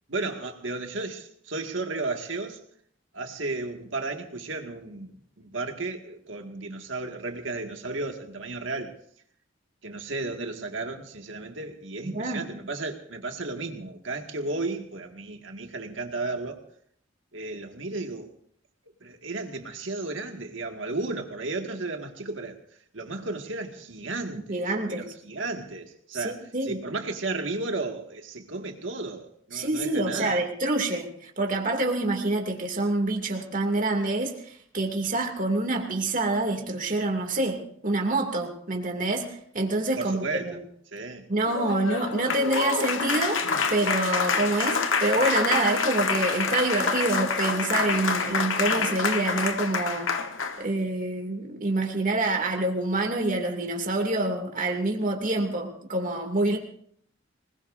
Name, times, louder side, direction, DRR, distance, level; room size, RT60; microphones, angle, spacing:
voice 1, 0.1-2.6 3.1-8.9 9.8-16.6 17.3-18.3 19.0-22.6 22.9-30.4 40.0-40.6 40.9-41.3, right 3 dB, 70° right, 4 dB, 2.0 m, -34 dB
voice 2, 12.0-12.4 24.5-25.1 26.1-26.8 29.5-40.6 41.3-50.1 50.6-56.6, right 2 dB, 45° right, 2 dB, 2.6 m, -27 dB
Applause, 41.5-50.6, left 5 dB, 80° left, 1.3 m, -27 dB
26.0 x 20.0 x 2.7 m, 0.65 s
head